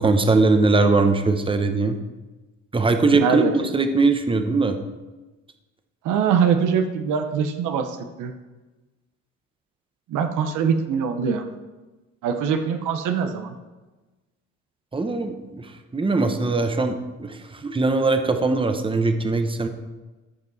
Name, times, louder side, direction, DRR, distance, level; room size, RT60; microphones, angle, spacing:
voice 1, 0.0-2.0 2.7-4.8 14.9-19.7, right 3 dB, 15° right, 7 dB, 0.9 m, -21 dB
voice 2, 3.1-3.5 6.0-8.3 10.1-11.4 12.2-13.5, right 7 dB, 90° right, 6 dB, 0.9 m, -23 dB
13.5 x 5.4 x 4.1 m, 1.2 s
cardioid pair, 90°, 30 cm